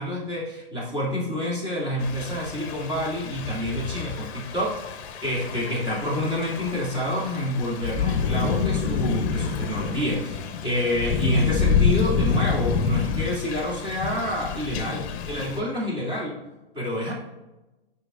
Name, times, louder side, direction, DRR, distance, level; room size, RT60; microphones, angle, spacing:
voice 1, 0.0-16.4 16.7-17.1, left 1 dB, 15° right, -5 dB, 2.3 m, -28 dB
Thunder / Rain, 2.0-15.6, left 6 dB, 35° left, 0.9 m, -28 dB
9.8 x 5.5 x 2.5 m, 1.0 s
hypercardioid pair, 125°, 31 cm